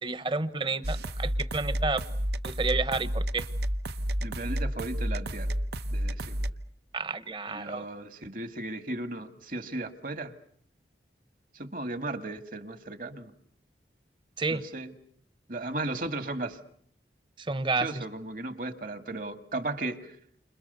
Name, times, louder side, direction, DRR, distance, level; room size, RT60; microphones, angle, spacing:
voice 1, 0.0-2.0 2.4-3.5 6.9-7.8 14.4-14.6 17.4-17.9, right 3 dB, 30° right, 14 dB, 1.1 m, -30 dB
sound 1, 0.8-6.5, equal, 70° right, 1.1 m, -31 dB
voice 2, 4.2-5.5 5.9-6.4 7.5-10.4 11.5-13.3 14.5-14.9 15.5-16.6 17.8-20.1, right 2 dB, 50° right, 10 dB, 1.9 m, -36 dB
30.0 x 26.5 x 6.8 m, 0.62 s
head